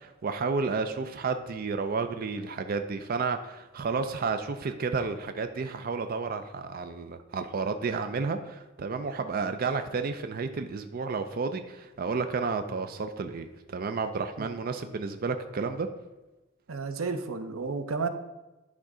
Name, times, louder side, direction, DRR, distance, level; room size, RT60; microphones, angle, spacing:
voice 1, 0.0-15.9, right 4 dB, 45° right, 8 dB, 0.4 m, -31 dB
voice 2, 16.7-18.1, right 4 dB, 90° right, 9 dB, 0.7 m, -32 dB
10.5 x 3.7 x 4.9 m, 1.1 s
head